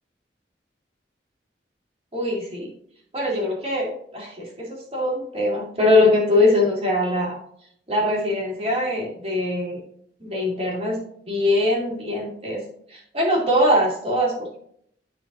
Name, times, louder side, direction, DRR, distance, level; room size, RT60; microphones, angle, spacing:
voice 1, 2.1-2.7 3.1-7.4 7.9-9.8 10.2-12.6 12.9-14.6, left 1 dB, 35° right, -3 dB, 2.5 m, -22 dB
12.0 x 4.5 x 2.7 m, 0.67 s
head